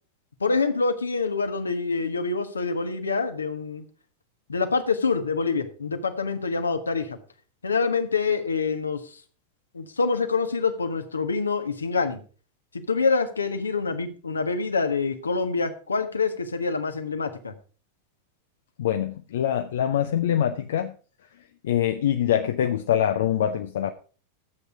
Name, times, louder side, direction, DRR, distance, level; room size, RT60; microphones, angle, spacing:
voice 1, 0.4-3.8 4.5-7.2 7.6-9.0 9.7-12.2 12.7-17.5, left 4 dB, 75° left, 7 dB, 1.4 m, -26 dB
voice 2, 18.8-20.9 21.6-23.9, left 10 dB, 60° left, 7 dB, 0.7 m, -24 dB
12.5 x 8.1 x 4.9 m, 0.38 s
figure-of-eight pair, 90°, 0 cm